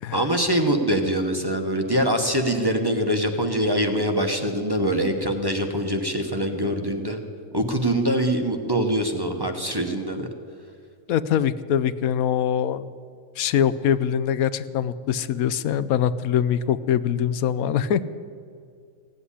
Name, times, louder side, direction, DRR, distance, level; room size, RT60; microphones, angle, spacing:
voice 1, 0.1-7.2 7.5-10.3, right 1 dB, 20° right, 3 dB, 1.0 m, -24 dB
voice 2, 11.1-12.9 13.4-18.0, left 9 dB, 85° left, 15 dB, 1.1 m, -23 dB
16.5 x 8.0 x 9.8 m, 2.3 s
omnidirectional pair, 1.5 m